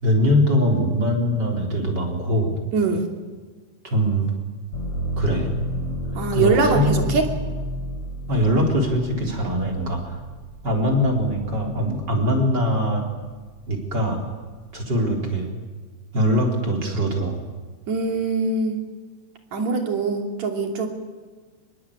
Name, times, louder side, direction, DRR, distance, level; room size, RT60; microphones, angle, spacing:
voice 1, 0.0-2.6 3.8-4.3 5.2-5.5 6.3-7.1 8.3-10.2 10.6-13.0 13.7-14.2 14.7-15.5 16.1-17.4, equal, 35° right, 1 dB, 4.5 m, -22 dB
voice 2, 2.7-3.1 6.2-7.2 17.9-18.8 19.5-20.9, right 4 dB, 70° right, 3 dB, 4.1 m, -22 dB
sound 1, 4.7-12.5 13.0-13.8, equal, 50° left, 5.4 m, -32 dB
25.0 x 21.5 x 8.7 m, 1.5 s
omnidirectional pair, 3.3 m